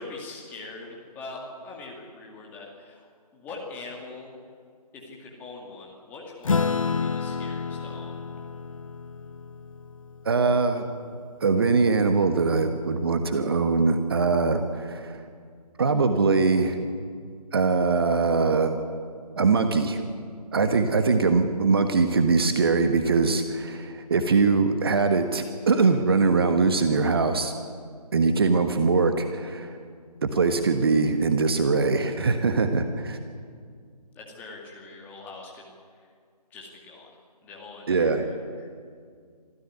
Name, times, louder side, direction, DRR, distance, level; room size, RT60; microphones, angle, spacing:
voice 1, 0.0-4.3 4.9-8.2 34.1-36.1 36.5-37.2 37.4-38.7, left 3 dB, 10° left, -2 dB, 2.3 m, -42 dB
Acoustic guitar / Strum, 6.4-11.3, left 5 dB, 55° left, 0.8 m, -30 dB
voice 2, 10.2-10.9 11.4-15.2 15.8-16.8 17.5-18.8 19.4-20.0 20.5-27.5 28.1-29.8 30.2-33.2 37.9-38.2, right 4 dB, 35° right, 7 dB, 1.3 m, -22 dB
26.0 x 14.0 x 9.6 m, 2.1 s
figure-of-eight pair, 155°, 21 cm